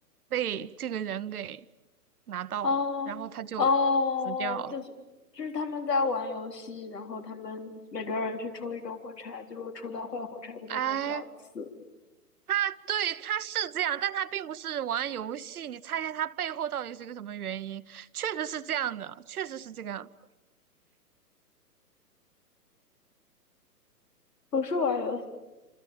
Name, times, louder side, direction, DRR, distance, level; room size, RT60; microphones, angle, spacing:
voice 1, 0.3-1.6 2.3-2.8 3.1-3.7 4.2-4.8 10.7-11.3 12.5-20.1, right 10 dB, 65° right, 1.0 m, -32 dB
voice 2, 2.6-3.1 3.6-4.8 5.3-11.2 11.6-11.7 24.5-25.3, left 4 dB, 75° left, 3.8 m, -30 dB
27.5 x 26.0 x 7.3 m
hypercardioid pair, 130°, 48 cm